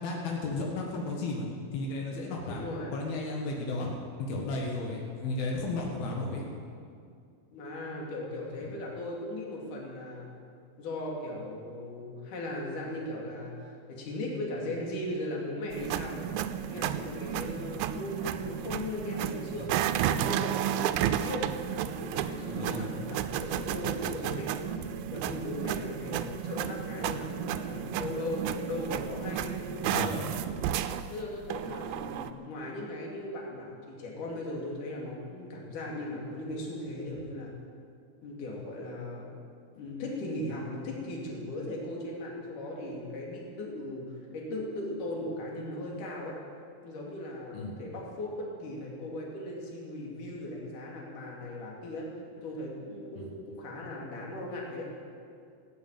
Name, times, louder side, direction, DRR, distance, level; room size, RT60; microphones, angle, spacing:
voice 1, 0.0-1.5 1.7-2.6 2.9-3.9 4.2-6.4 20.4-20.5 22.4-22.9 29.9-30.1 47.5-47.8 53.2-53.3, left 2 dB, 85° left, -1 dB, 3.5 m, -34 dB
voice 2, 2.5-3.0 7.5-10.3 10.8-16.3 16.7-19.7 20.1-21.6 21.8-24.7 25.1-30.2 31.1-37.5 38.2-39.3 39.8-46.4 46.8-52.1 52.4-54.9, left 1 dB, 60° left, -2 dB, 3.8 m, -38 dB
sound 1, 15.7-32.3, right 10 dB, 90° right, 2.5 m, -32 dB
17.0 x 8.5 x 9.0 m, 2.3 s
omnidirectional pair, 4.3 m